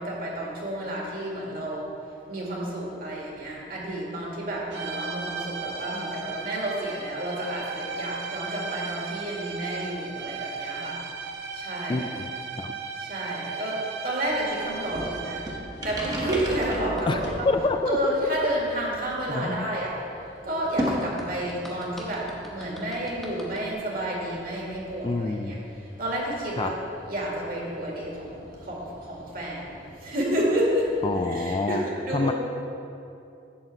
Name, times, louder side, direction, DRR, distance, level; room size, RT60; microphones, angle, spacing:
voice 1, 0.0-1.9 2.3-12.1 12.9-15.5 15.8-17.5 17.9-19.9 20.4-25.6 26.0-26.7 27.1-32.3, right 1 dB, 50° right, -4 dB, 2.2 m, -30 dB
sound 1, 4.7-15.8, right 5 dB, 70° right, 0.8 m, -36 dB
voice 2, 11.9-12.2 12.6-12.7 17.1-18.3 19.3-19.7 25.0-25.6 26.6-26.7 31.0-31.8 32.1-32.3, left 3 dB, 25° left, 7 dB, 0.3 m, -27 dB
sound 2, 14.2-31.2, equal, 20° right, 1.2 m, -39 dB
sound 3, 16.3-17.1 20.8-23.7, equal, ahead, 1.2 m, -44 dB
11.5 x 4.1 x 7.6 m, 2.7 s
head